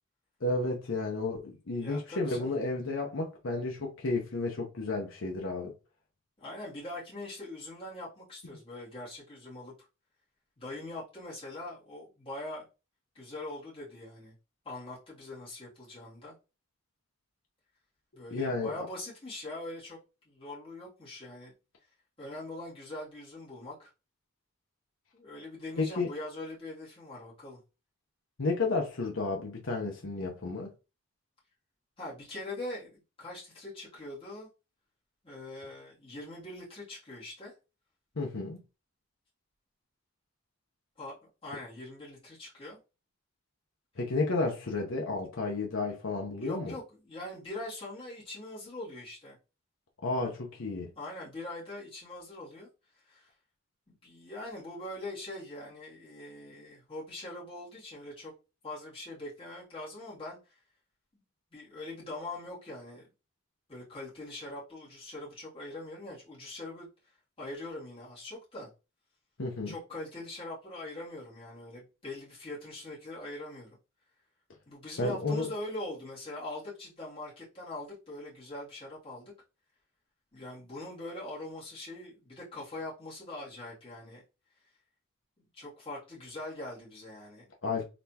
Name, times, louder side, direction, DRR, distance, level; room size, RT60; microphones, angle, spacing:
voice 1, 0.4-5.7 18.3-18.9 25.8-26.1 28.4-30.7 38.2-38.6 44.0-46.7 50.0-50.9 69.4-69.7 75.0-75.5 87.6-87.8, left 3 dB, 65° left, 0.8 m, -32 dB
voice 2, 1.7-2.5 6.4-9.7 10.6-12.7 13.1-14.3 14.6-16.4 18.1-20.0 20.2-21.5 22.2-23.9 25.1-27.6 32.0-34.5 35.2-37.5 41.0-41.1 41.4-42.8 46.4-49.4 51.0-52.7 53.1-53.3 53.9-58.3 58.6-60.6 61.1-61.2 61.5-63.1 63.7-66.9 67.4-68.7 69.7-73.8 74.7-79.3 80.3-84.2 85.4-87.5, left 1 dB, 25° left, 2.4 m, -42 dB
4.1 x 3.3 x 2.8 m
head